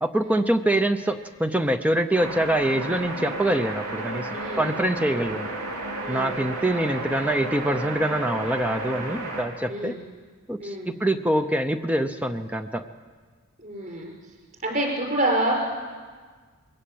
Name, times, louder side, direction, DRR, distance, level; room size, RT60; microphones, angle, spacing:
voice 1, 0.0-4.3 4.6-5.5 6.1-10.0 10.5-12.8, right 1 dB, 5° right, 8 dB, 0.6 m, -24 dB
sound 1, 2.1-9.4, right 2 dB, 85° right, 3.3 m, -32 dB
voice 2, 4.3-4.7 6.0-6.4 9.7-10.0 10.6-10.9 13.6-14.1 14.6-15.5, right 1 dB, 40° right, -1 dB, 6.0 m, -28 dB
22.0 x 16.5 x 8.6 m, 1.5 s
head